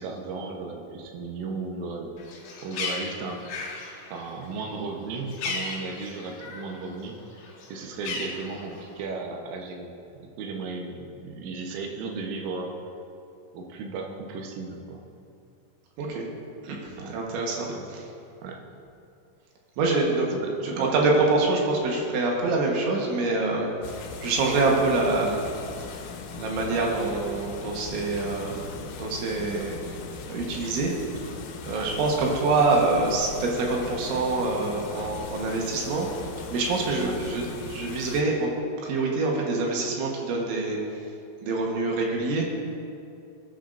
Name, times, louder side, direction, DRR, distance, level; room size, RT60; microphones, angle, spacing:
voice 1, 0.0-2.1 2.6-3.4 4.1-7.2 7.7-9.9 10.2-12.8 13.5-15.0 17.0-17.2 17.7-17.9 18.4-18.6 20.3-20.9 31.7-31.9 37.0-37.2, right 4 dB, 90° right, 2 dB, 3.7 m, -35 dB
Bird, 2.2-6.8 7.1-9.0, left 3 dB, 65° left, 3.4 m, -36 dB
voice 2, 16.6-17.7 19.8-20.4 20.6-23.7 24.2-25.5 26.3-30.0 30.3-30.9 31.3-31.4 31.6-36.1 36.5-37.4 37.7-38.5 38.8-40.8 41.4-42.5, right 3 dB, 75° right, -1 dB, 3.6 m, -25 dB
sound 1, 23.8-38.2, left 5 dB, 85° left, 3.5 m, -39 dB
19.5 x 10.0 x 2.6 m, 2.6 s
omnidirectional pair, 5.6 m